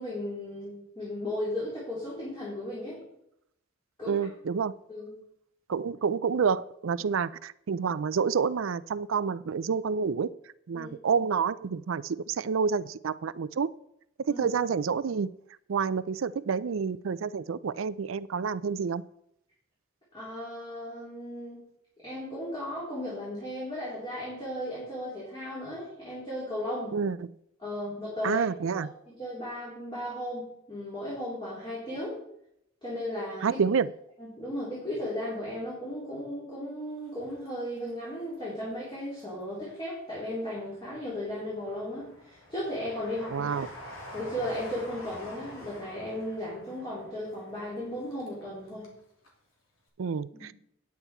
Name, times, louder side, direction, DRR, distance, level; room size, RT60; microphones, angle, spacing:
voice 1, 0.0-3.0 4.0-4.2 4.9-5.1 10.7-10.9 14.3-14.5 20.1-21.6 22.0-27.0 27.6-28.4 28.7-32.2 32.8-33.6 34.2-43.5 44.1-48.9 50.3-50.4, left 1 dB, 20° left, -8 dB, 3.7 m, -36 dB
voice 2, 4.1-4.8 5.7-10.3 10.7-13.7 14.2-15.3 15.7-19.0 26.9-27.3 28.2-28.9 33.4-33.9 43.3-43.7 50.0-50.5, right 6 dB, 75° right, 17 dB, 0.4 m, -28 dB
Train, 37.0-38.3 38.7-39.7 40.2-49.0 49.2-49.3, left 1 dB, 85° left, 2.9 m, -47 dB
9.5 x 8.9 x 4.4 m, 0.75 s
head